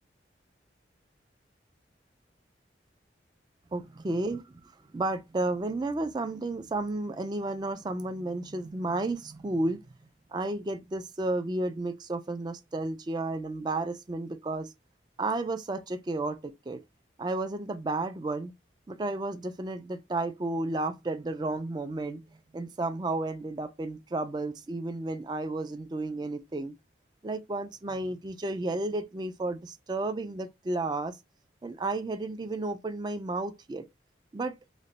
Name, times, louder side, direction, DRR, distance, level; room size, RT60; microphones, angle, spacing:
voice 1, 3.7-4.6 4.9-9.9 10.3-14.7 15.2-16.8 17.2-18.5 18.9-22.2 22.5-26.7 27.2-31.2 31.6-33.8 34.3-34.6, right 2 dB, 25° right, 0.3 m, -32 dB
3.0 x 2.2 x 3.9 m
head